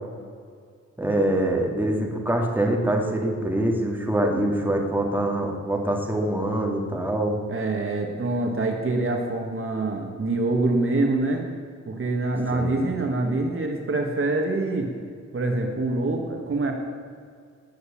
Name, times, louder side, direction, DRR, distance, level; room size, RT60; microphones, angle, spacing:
voice 1, 1.0-7.4 12.5-12.7, right 1 dB, 5° right, 0 dB, 2.3 m, -24 dB
voice 2, 7.5-11.4 11.9-14.9 15.3-16.7, right 2 dB, 45° right, 2 dB, 1.8 m, -25 dB
19.0 x 8.2 x 8.6 m, 2.1 s
wide cardioid pair, 170°, 30 cm